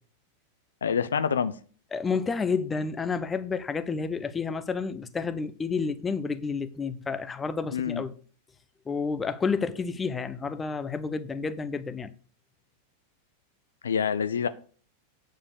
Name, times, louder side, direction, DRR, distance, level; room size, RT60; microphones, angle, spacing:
voice 1, 0.8-1.5 7.7-8.0 13.8-14.5, left 7 dB, 70° left, 0.4 m, -26 dB
voice 2, 1.9-8.1 8.9-12.1, left 5 dB, 15° left, 0.7 m, -30 dB
8.7 x 4.7 x 6.5 m
figure-of-eight pair, 90°, 0 cm